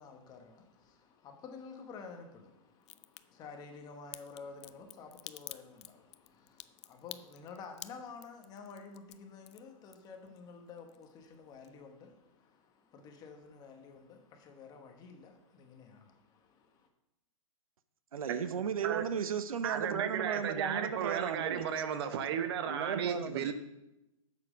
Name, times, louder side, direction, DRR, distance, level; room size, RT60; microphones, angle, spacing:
voice 1, 0.0-16.9, left 5 dB, 20° left, 1.3 m, -51 dB
Crack, 2.8-3.2 4.1-10.4 10.7-11.4 11.6-11.7, left 13 dB, 50° left, 0.5 m, -48 dB
voice 2, 18.1-21.7 22.7-23.5, right 7 dB, 85° right, 0.8 m, -35 dB
voice 3, 19.6-23.5, right 8 dB, 45° right, 1.0 m, -34 dB
8.0 x 7.4 x 5.2 m
hypercardioid pair, 145°, 18 cm